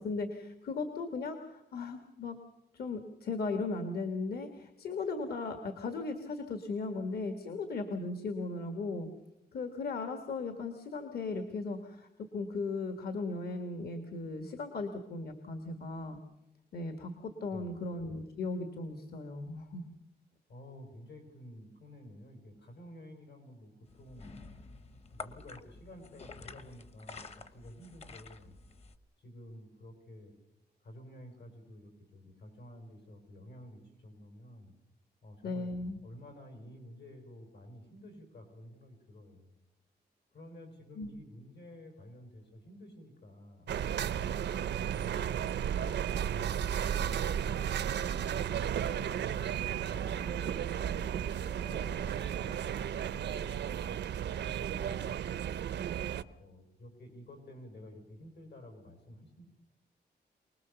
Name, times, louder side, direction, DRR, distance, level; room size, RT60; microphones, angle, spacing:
voice 1, 0.0-2.4 2.7-9.1 9.5-16.2 16.7-19.9 35.4-36.0 41.0-41.2, left 3 dB, 65° left, 7 dB, 1.6 m, -37 dB
voice 2, 17.5-17.8 20.5-28.6 29.2-30.3 30.8-34.7 35.2-35.7 36.0-39.6 40.3-44.4 44.9-45.9 46.2-54.2 54.4-55.1 56.0-59.5, left 1 dB, 80° left, 5 dB, 6.0 m, -52 dB
sound 1, 23.9-29.0, left 4 dB, 35° left, 1.0 m, -49 dB
sound 2, 43.7-56.2, right 9 dB, 85° right, 0.7 m, -34 dB
24.5 x 20.0 x 7.0 m, 0.91 s
wide cardioid pair, 175°, 17 cm